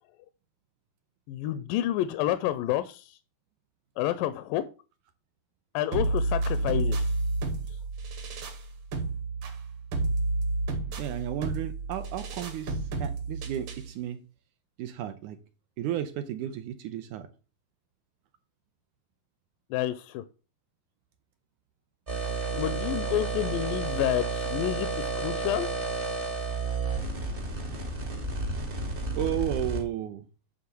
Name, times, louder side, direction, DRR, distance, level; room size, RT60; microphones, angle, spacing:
voice 1, 1.3-3.2 4.0-4.6 5.7-7.1 7.7-7.8 19.7-20.2 22.5-25.7, left 13 dB, 80° left, 12 dB, 2.2 m, -29 dB
sound 1, 5.9-13.9, right 2 dB, 55° right, 1.7 m, -30 dB
voice 2, 11.0-14.2 14.8-15.4 15.8-17.3 29.1-30.2, right 11 dB, 75° right, 9 dB, 1.9 m, -33 dB
sound 2, 22.1-29.8, right 3 dB, 35° right, 0.8 m, -31 dB
9.6 x 3.8 x 6.8 m, 0.34 s
omnidirectional pair, 4.0 m